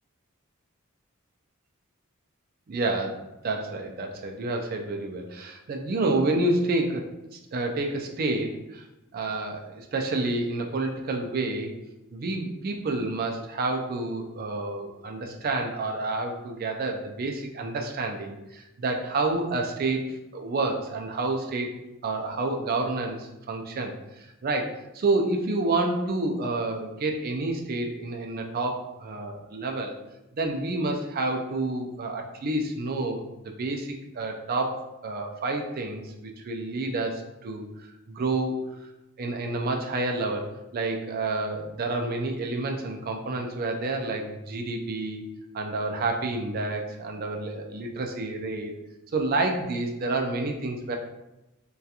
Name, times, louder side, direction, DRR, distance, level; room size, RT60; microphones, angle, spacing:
voice 1, 2.7-7.1 7.3-8.8 9.1-11.7 12.1-21.7 22.0-30.0 30.3-37.6 38.1-38.5 39.2-45.2 45.5-48.7 49.1-50.9, right 2 dB, 45° right, 3 dB, 0.3 m, -29 dB
2.8 x 2.3 x 2.4 m, 0.97 s
head